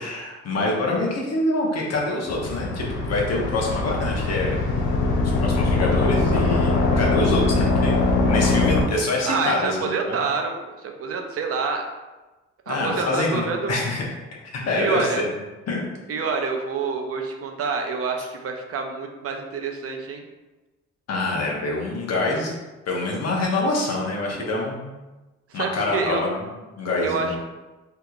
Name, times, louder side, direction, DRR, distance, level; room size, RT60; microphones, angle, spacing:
voice 1, 0.0-4.6 5.4-8.0 8.3-10.2 12.7-14.0 14.5-15.2 15.7-15.8 21.1-22.5 22.9-24.9 25.5-27.4, left 2 dB, 60° left, -2 dB, 0.9 m, -25 dB
sound 1, 2.3-8.8, left 3 dB, 80° left, 0.6 m, -22 dB
voice 2, 9.2-10.5 10.8-11.8 12.7-13.8 14.8-15.2 16.1-20.2 25.5-26.2 27.0-27.4, right 4 dB, 50° right, 3 dB, 0.5 m, -27 dB
3.5 x 2.9 x 2.4 m, 1.1 s
cardioid pair, 90°, 30 cm